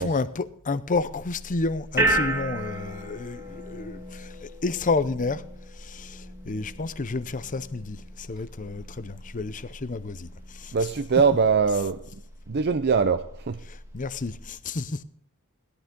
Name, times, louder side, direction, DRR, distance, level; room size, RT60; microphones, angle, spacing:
voice 1, 0.0-5.4 5.8-10.3 10.6-10.7 13.9-15.0, left 3 dB, 35° left, 0.7 m, -30 dB
sound 1, 0.9-14.5, right 1 dB, 10° right, 2.0 m, -34 dB
voice 2, 10.7-12.0 12.5-13.6, right 5 dB, 50° right, 0.5 m, -22 dB
17.0 x 12.0 x 3.8 m
head